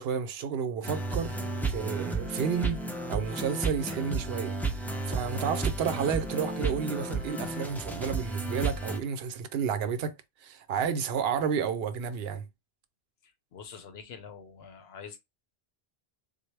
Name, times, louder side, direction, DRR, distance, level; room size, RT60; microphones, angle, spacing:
voice 1, 0.0-1.4 1.7-2.8 3.1-4.6 5.1-12.4, right 7 dB, 75° right, 0.8 m, -31 dB
sound 1, 0.8-9.0, right 3 dB, ahead, 0.5 m, -33 dB
voice 2, 13.2-15.2, left 6 dB, 75° left, 1.0 m, -46 dB
3.9 x 2.0 x 3.2 m
omnidirectional pair, 1.1 m